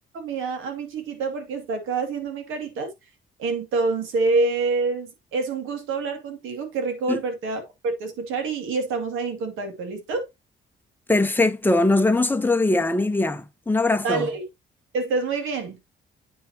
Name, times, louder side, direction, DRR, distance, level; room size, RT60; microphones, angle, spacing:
voice 1, 0.1-2.9 3.4-10.3 14.0-14.4 14.9-15.8, right 3 dB, 90° right, 2.4 m, -27 dB
voice 2, 11.1-14.3, left 2 dB, 10° left, 1.1 m, -21 dB
9.1 x 5.8 x 2.9 m
cardioid pair, 90°, 20 cm